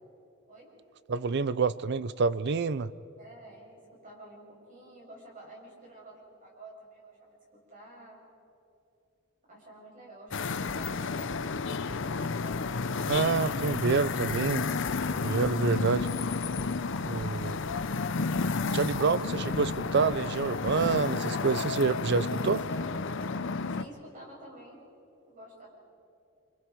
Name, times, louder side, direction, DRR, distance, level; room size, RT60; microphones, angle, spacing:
voice 1, 1.1-2.9 13.1-14.6 15.2-16.1 17.0-17.6 18.7-22.6, right 4 dB, 60° right, 0.5 m, -27 dB
voice 2, 3.2-8.2 9.5-12.8 22.2-22.9 23.7-24.8 25.2-25.7, right 1 dB, 40° right, 7.1 m, -50 dB
sound 1, 10.3-23.8, left 4 dB, 65° left, 0.7 m, -31 dB
sound 2, 10.3-21.2, equal, ahead, 2.4 m, -51 dB
29.5 x 26.0 x 4.7 m
head